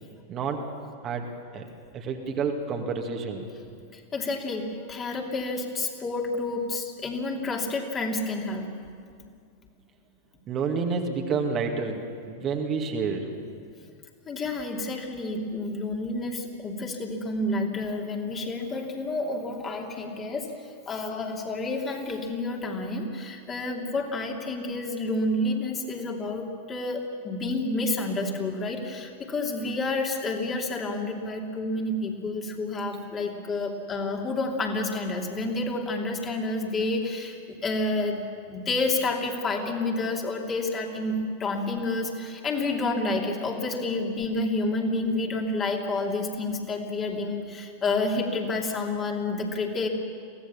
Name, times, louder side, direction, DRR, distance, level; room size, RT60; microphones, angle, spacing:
voice 1, 0.3-0.7 1.0-1.3 1.5-1.7 1.9-3.5 10.5-13.3, right 5 dB, 30° right, 2 dB, 2.2 m, -29 dB
voice 2, 3.9-8.7 14.3-20.5 20.9-49.9, left 2 dB, 25° left, 1 dB, 2.9 m, -29 dB
23.5 x 17.0 x 7.2 m, 2.2 s
figure-of-eight pair, 90°, 0 cm